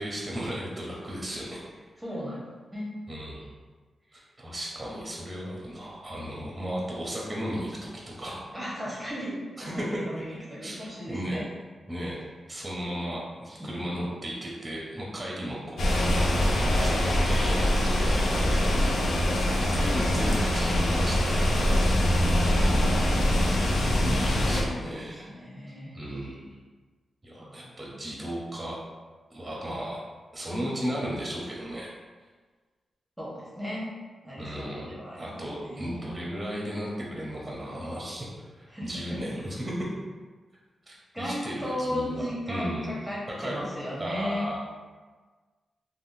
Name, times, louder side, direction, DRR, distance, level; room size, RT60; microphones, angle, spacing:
voice 1, 0.0-1.6 3.1-3.5 4.1-8.4 9.6-9.9 10.2-10.3 10.6-11.4 11.9-12.2 12.5-16.0 16.6-18.8 19.7-21.8 23.9-25.3 25.9-26.5 27.2-28.8 29.3-30.0 30.3-31.9 34.4-39.7 40.9-42.9 43.4-43.7 44.0-44.6, equal, 20° right, -4 dB, 0.7 m, -35 dB
voice 2, 2.0-2.4 2.7-3.0 8.5-11.5 13.6-14.1 19.2-19.5 24.4-26.0 27.4-27.7 33.2-33.9 34.2-36.1 38.7-39.2 41.1-44.5, equal, 5° right, -7 dB, 1.0 m, -36 dB
sound 1, 15.8-24.6, left 1 dB, 85° left, 0.5 m, -23 dB
3.5 x 2.1 x 2.6 m, 1.4 s
cardioid pair, 65°, 0 cm